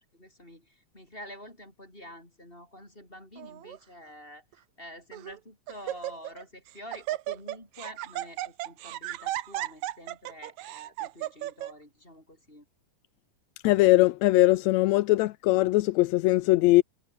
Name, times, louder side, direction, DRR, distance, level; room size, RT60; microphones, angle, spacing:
voice 1, 0.1-12.7, equal, 15° left, 6.7 m, -48 dB
Laughter, 3.4-3.8 4.5-4.6 5.1-5.4 5.7-6.4 6.7-11.7, right 15 dB, 70° right, 2.1 m, -35 dB
voice 2, 13.6-16.8, left 18 dB, 80° left, 1.7 m, -21 dB
omnidirectional pair, 3.6 m